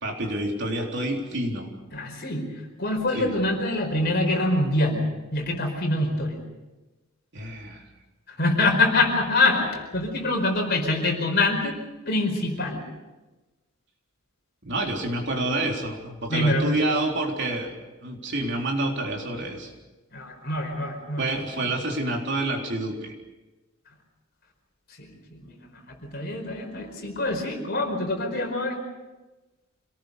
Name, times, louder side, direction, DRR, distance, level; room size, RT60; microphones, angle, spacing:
voice 1, 0.0-1.7 3.1-3.3 7.3-7.9 14.6-17.7 18.0-19.7 21.2-23.1, right 1 dB, 55° right, 0 dB, 3.9 m, -28 dB
voice 2, 1.9-2.4 2.8-5.0 5.3-6.4 8.3-11.8 12.1-12.8 16.3-16.8 20.1-21.2 25.0-28.8, left 2 dB, 50° left, 2 dB, 4.8 m, -25 dB
26.5 x 19.0 x 6.7 m, 1.1 s
head